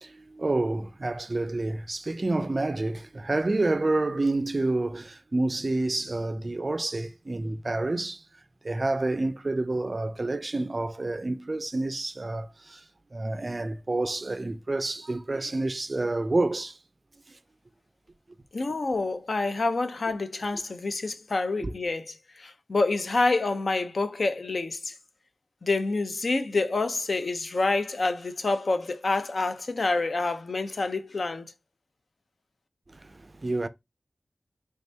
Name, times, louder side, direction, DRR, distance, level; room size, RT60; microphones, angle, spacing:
voice 1, 0.0-8.2 8.6-12.8 13.1-16.8 17.3-17.4 21.6-21.7 32.9-33.7, right 2 dB, 40° right, 0.3 m, -29 dB
voice 2, 18.5-24.9 25.6-31.5, left 3 dB, 65° left, 0.5 m, -27 dB
3.4 x 2.7 x 3.3 m
wide cardioid pair, 75°, 0 cm